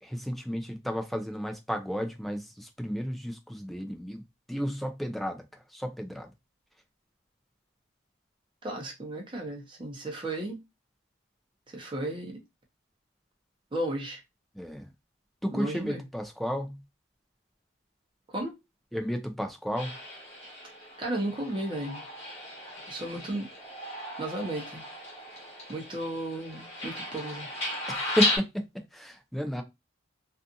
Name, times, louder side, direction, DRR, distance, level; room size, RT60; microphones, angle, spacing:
voice 1, 0.0-4.2 4.5-5.4 5.7-6.3 14.6-14.9 15.4-16.8 18.9-19.9 23.1-23.2 27.9-28.6 28.9-29.6, equal, ahead, 0.4 m, -32 dB
voice 2, 8.6-10.6 11.7-12.4 13.7-14.2 15.5-16.0 18.3-18.5 21.0-22.0 22.9-23.5 24.2-24.8 25.7-27.5, right 1 dB, 25° right, 0.8 m, -34 dB
sound 1, 19.7-28.4, left 2 dB, 30° left, 1.3 m, -35 dB
2.6 x 2.4 x 2.4 m
head